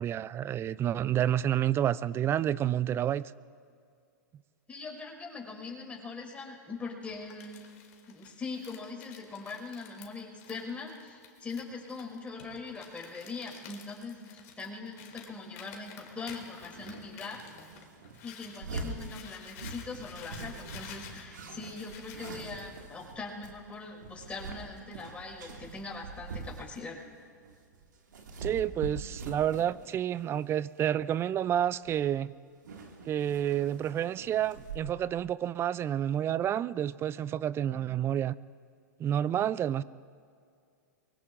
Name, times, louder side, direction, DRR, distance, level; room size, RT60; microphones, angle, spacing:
voice 1, 0.0-3.2 28.4-32.3 33.1-38.3 39.0-39.8, right 10 dB, 25° right, 19 dB, 0.4 m, -29 dB
voice 2, 4.7-7.7 8.1-17.4 18.2-27.0, left 4 dB, 15° left, -1 dB, 5.4 m, -41 dB
Crumpling crinkling, 7.0-18.6 18.9-22.4, left 8 dB, 60° left, 2.5 m, -51 dB
sound 1, 15.0-15.2 16.3-27.1 27.4-30.0 30.3-30.7 31.5-31.6 31.8-32.2 32.5-34.8, right 3 dB, 80° right, 2.2 m, -44 dB
24.0 x 23.0 x 2.6 m, 2.2 s
hypercardioid pair, 105°, 10 cm